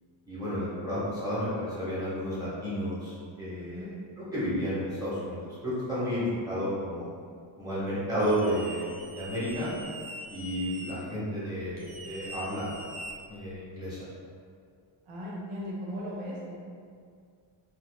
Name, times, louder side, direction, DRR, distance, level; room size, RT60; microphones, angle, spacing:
voice 1, 0.3-3.9 4.3-7.1 7.6-9.7 10.3-12.8 13.3-14.1, equal, 10° right, -11 dB, 1.2 m, -32 dB
voice 2, 3.6-3.9 15.1-16.6, equal, 80° right, -5 dB, 1.0 m, -37 dB
sound 1, 8.2-10.9 11.8-13.6, right 1 dB, 35° right, 0.7 m, -43 dB
3.9 x 2.7 x 2.3 m, 2.2 s
cardioid pair, 140°, 49 cm